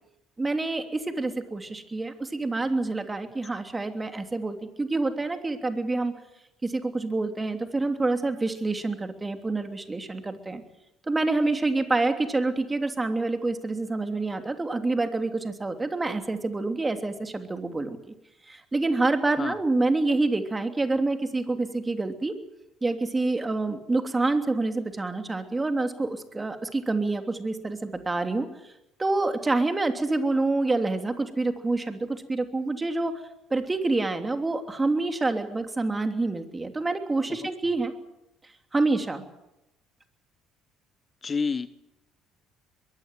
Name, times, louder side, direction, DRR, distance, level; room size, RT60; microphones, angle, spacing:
voice 1, 0.4-6.1 6.6-10.6 11.1-18.0 18.5-22.3 22.8-28.7 29.0-33.2 33.5-37.9 38.7-39.2, right 2 dB, 20° right, 6 dB, 3.1 m, -27 dB
voice 2, 41.2-41.7, left 5 dB, 35° left, 15 dB, 1.0 m, -28 dB
22.5 x 16.0 x 9.2 m, 0.91 s
hypercardioid pair, 60°, 0 cm